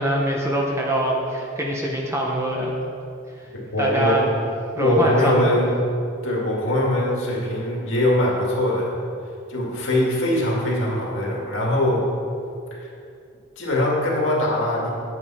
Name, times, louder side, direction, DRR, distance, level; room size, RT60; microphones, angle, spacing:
voice 1, 0.0-2.7 3.8-4.3 4.7-5.3, right 1 dB, 10° right, -1 dB, 0.8 m, -23 dB
voice 2, 3.5-4.3 4.8-5.7 6.2-9.0 9.5-12.1 12.7-12.9 13.6-14.9, left 1 dB, 60° left, -3 dB, 2.1 m, -22 dB
9.0 x 8.4 x 4.3 m, 2.5 s
head